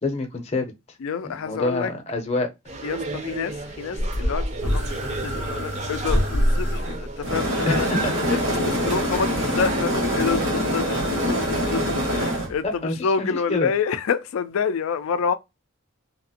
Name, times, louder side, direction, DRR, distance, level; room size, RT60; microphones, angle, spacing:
voice 1, 0.0-0.7 1.2-2.5 7.7-8.1 12.6-13.7, left 2 dB, 30° left, 0.6 m, -26 dB
voice 2, 1.0-1.9 2.8-7.9 8.3-8.4 8.6-15.3, left 6 dB, 85° left, 0.4 m, -28 dB
sound 1, 2.7-10.0, right 3 dB, 30° right, 0.5 m, -34 dB
sound 2, 4.0-12.5, equal, 90° right, 1.3 m, -24 dB
2.9 x 2.5 x 2.7 m
head